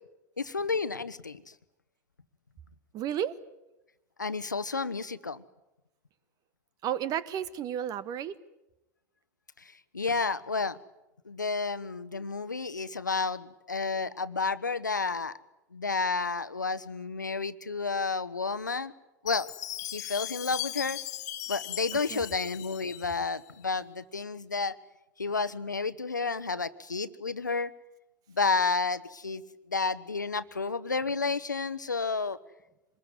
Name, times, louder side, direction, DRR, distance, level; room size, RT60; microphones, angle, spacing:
voice 1, 0.4-1.4 4.2-5.4 9.9-10.8 11.3-15.3 15.7-18.9 19.2-19.5 19.8-21.0 21.5-24.7 25.2-27.7 28.4-29.4 29.7-32.4, left 4 dB, 90° left, 15 dB, 1.1 m, -31 dB
voice 2, 2.9-3.4 6.8-8.3 21.9-22.2, right 10 dB, 40° right, 17 dB, 1.4 m, -32 dB
Chime, 19.3-23.4, left 14 dB, 65° left, 1.9 m, -38 dB
25.5 x 21.5 x 9.5 m, 0.96 s
figure-of-eight pair, 85°, 10 cm